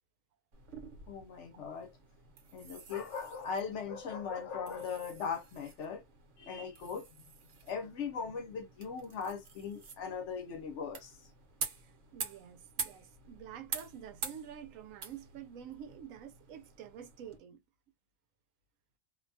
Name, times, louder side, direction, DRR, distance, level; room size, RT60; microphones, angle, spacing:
Knife Sharpening, 0.5-17.4, right 5 dB, 70° right, 1.1 m, -47 dB
voice 1, 1.1-1.9 2.5-6.0 6.4-7.1 7.7-11.1, left 6 dB, 70° left, 0.9 m, -39 dB
voice 2, 12.1-17.6, right 9 dB, 90° right, 1.0 m, -48 dB
2.6 x 2.2 x 2.6 m
omnidirectional pair, 1.3 m